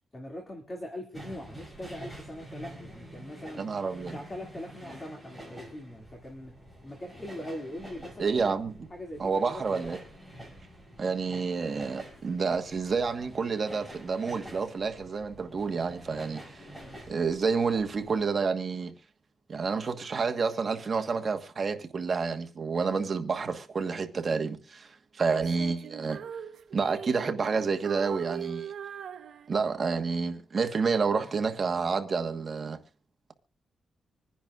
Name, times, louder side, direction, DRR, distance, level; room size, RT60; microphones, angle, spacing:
voice 1, 0.1-3.7 4.1-6.5 6.8-8.4 8.9-9.9, left 1 dB, 25° left, 2.4 m, -41 dB
sound 1, 1.1-18.2, equal, 10° left, 6.1 m, -48 dB
voice 2, 3.6-4.2 8.2-8.9 9.2-10.0 11.0-16.6 17.1-18.9 19.5-26.2 26.7-28.7 29.5-32.8, right 5 dB, 40° right, 1.4 m, -29 dB
Female singing, 25.3-27.5 27.8-29.9, right 8 dB, 70° right, 0.8 m, -41 dB
26.0 x 10.0 x 2.5 m
wide cardioid pair, 125°, 0 cm